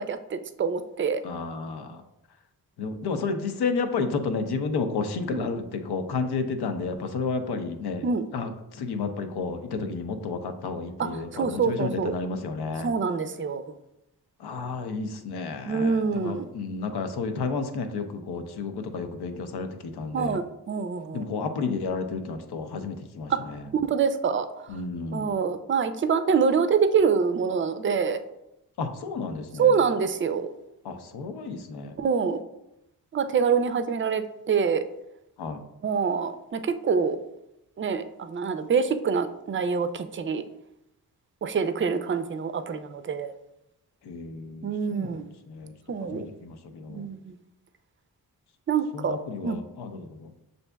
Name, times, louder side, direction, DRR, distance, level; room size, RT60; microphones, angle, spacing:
voice 1, 0.0-1.2 5.4-5.5 8.0-8.3 11.0-11.1 11.3-12.1 12.8-13.6 15.7-16.5 20.1-21.3 23.3-23.4 23.8-24.5 25.1-28.2 29.6-30.5 32.0-32.4 33.1-34.8 35.8-37.2 37.8-40.4 41.4-43.3 44.6-45.3 45.9-46.3 46.9-47.3 48.7-49.2 49.4-49.6, right 6 dB, 30° right, 10 dB, 0.4 m, -25 dB
voice 2, 1.2-2.0 2.8-12.9 14.4-20.4 21.1-23.7 24.7-25.4 28.8-29.8 30.8-32.0 35.4-35.6 44.0-47.1 48.9-50.3, left 4 dB, 75° left, 7 dB, 0.6 m, -32 dB
6.7 x 2.6 x 2.2 m, 0.86 s
cardioid pair, 45°, 39 cm